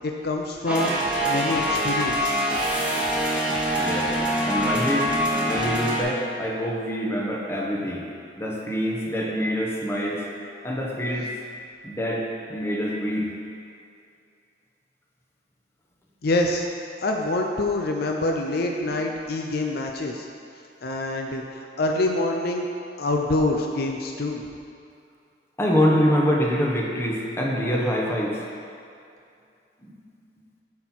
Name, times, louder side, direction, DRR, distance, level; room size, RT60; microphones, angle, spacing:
voice 1, 0.0-0.9 1.2-2.4 16.2-16.7 17.0-20.3 20.8-22.7 23.0-24.4, left 2 dB, 60° left, 2 dB, 0.6 m, -26 dB
sound 1, 0.7-6.0, equal, 5° right, 1.3 m, -24 dB
voice 2, 3.7-4.1 4.4-5.1 5.4-8.1 8.4-10.2 10.6-11.3 11.8-13.3 25.6-28.4 29.8-30.0, equal, 15° left, -2 dB, 1.0 m, -25 dB
9.4 x 4.4 x 6.1 m, 2.5 s
head